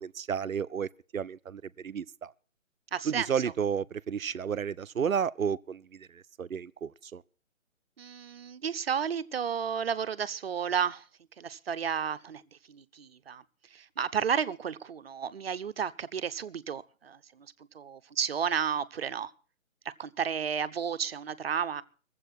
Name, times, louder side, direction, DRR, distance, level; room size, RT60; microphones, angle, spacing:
voice 1, 0.0-2.3 3.0-7.2, right 7 dB, 90° right, 0.6 m, -32 dB
voice 2, 2.9-3.3 8.0-11.0 11.4-12.4 12.7-13.4 13.7-17.5 17.7-19.3 19.8-21.8, right 7 dB, 50° right, 0.7 m, -32 dB
20.0 x 7.8 x 6.1 m
figure-of-eight pair, 145°, 40 cm